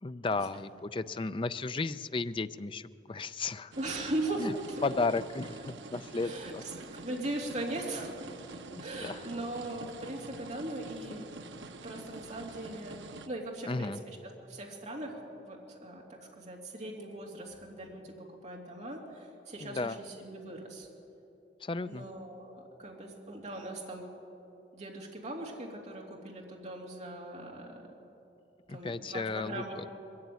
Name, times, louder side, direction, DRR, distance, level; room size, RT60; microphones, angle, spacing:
voice 1, 0.0-3.7 4.4-4.6 4.8-6.6 8.7-9.2 13.7-14.0 19.6-20.0 21.6-22.0 28.7-29.9, left 3 dB, 30° left, 12 dB, 0.5 m, -34 dB
sound 1, 3.7-13.3, right 3 dB, 80° right, 0.9 m, -47 dB
voice 2, 3.8-4.8 6.2-8.1 8.8-11.3 11.8-13.0 13.3-14.2 14.4-20.9 21.9-24.1 24.7-27.9 28.7-29.9, right 1 dB, 40° right, -1 dB, 2.8 m, -39 dB
21.5 x 14.0 x 9.3 m, 2.8 s
head